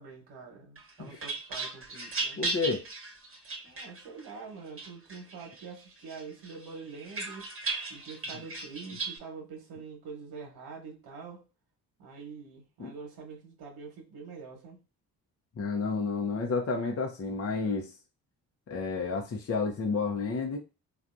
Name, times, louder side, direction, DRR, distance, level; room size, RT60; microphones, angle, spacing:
voice 1, 0.0-2.4 3.6-7.5 7.9-11.4 12.0-14.8, right 5 dB, 75° right, 1.2 m, -45 dB
sound 1, 0.8-4.3 4.8-5.7 6.1-9.2, right 3 dB, 35° right, 1.0 m, -37 dB
voice 2, 2.4-2.8 12.8-12.9 15.6-17.9 18.7-20.6, left 4 dB, 40° left, 0.7 m, -31 dB
3.3 x 2.5 x 2.5 m
supercardioid pair, 55°, 38 cm